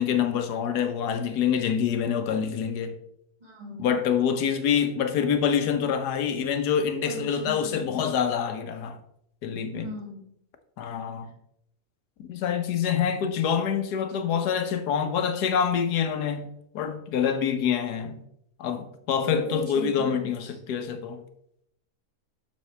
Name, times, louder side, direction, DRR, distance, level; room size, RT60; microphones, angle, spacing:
voice 1, 0.0-3.0 3.8-9.0 9.4-9.9 10.8-11.3 12.2-18.2 18.6-21.2, left 7 dB, 90° left, 1.4 m, -26 dB
voice 2, 3.4-3.9 7.0-8.1 9.7-10.3 19.2-20.3, left 1 dB, 25° right, 1.9 m, -37 dB
7.3 x 6.7 x 3.3 m
omnidirectional pair, 1.7 m